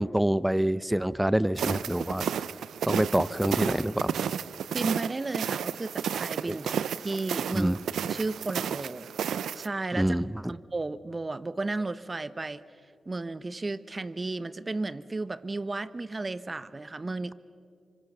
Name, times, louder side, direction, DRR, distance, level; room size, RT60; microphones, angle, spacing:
voice 1, 0.0-2.3 2.8-4.1 6.5-6.6 7.5-7.8 9.9-10.5, right 1 dB, 10° right, 18 dB, 0.7 m, -26 dB
sound 1, 1.6-9.7, right 8 dB, 90° right, 0.5 m, -32 dB
voice 2, 4.7-6.7 7.0-7.8 8.0-9.1 9.5-10.2 10.5-12.6 13.1-17.3, right 3 dB, 40° right, 16 dB, 1.0 m, -33 dB
25.5 x 25.0 x 6.8 m, 2.5 s
cardioid pair, 45°, 0 cm